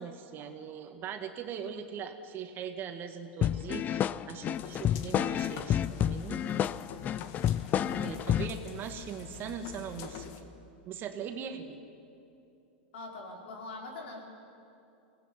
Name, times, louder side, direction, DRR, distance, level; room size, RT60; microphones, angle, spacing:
voice 1, 0.0-6.4 8.0-10.5 10.9-11.8, right 7 dB, 35° right, 7 dB, 2.1 m, -40 dB
sound 1, 3.4-8.6, left 10 dB, 30° left, 0.6 m, -29 dB
sound 2, 4.5-10.4, left 9 dB, 50° left, 1.9 m, -46 dB
voice 2, 7.8-8.1 12.9-14.2, left 2 dB, 75° left, 1 dB, 5.6 m, -43 dB
23.0 x 18.0 x 10.0 m, 2.8 s
hypercardioid pair, 125°, 6 cm